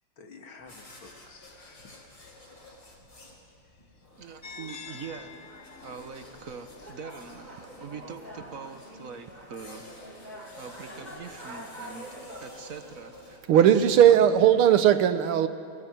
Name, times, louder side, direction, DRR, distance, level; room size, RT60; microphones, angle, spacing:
voice 1, 0.2-2.2 3.6-4.1, left 4 dB, 70° left, 2.9 m, -52 dB
sound 1, 0.6-14.4, left 2 dB, 55° left, 5.2 m, -52 dB
voice 2, 4.2-5.4 5.8-9.9 10.6-14.2, right 5 dB, 45° right, 1.4 m, -43 dB
sound 2, 4.4-10.4, left 4 dB, 30° left, 1.2 m, -49 dB
sound 3, 4.8-12.5, equal, 20° right, 4.1 m, -46 dB
voice 3, 13.5-15.5, right 10 dB, 85° right, 1.9 m, -18 dB
23.5 x 19.5 x 9.3 m
omnidirectional pair, 2.3 m